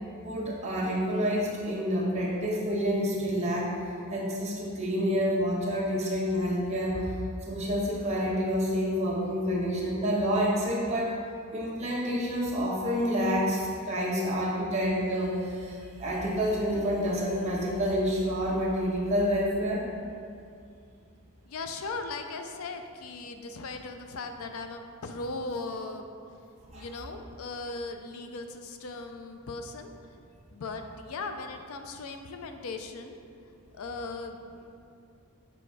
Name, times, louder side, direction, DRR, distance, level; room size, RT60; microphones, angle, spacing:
voice 1, 0.2-3.7 4.1-7.1 7.4-11.2 11.5-19.9 26.7-26.9, equal, 30° right, -5 dB, 1.1 m, -28 dB
voice 2, 21.5-26.1 26.7-29.9 30.5-33.2 33.7-34.7, left 3 dB, 80° left, 6 dB, 0.5 m, -38 dB
6.9 x 3.5 x 4.7 m, 2.3 s
head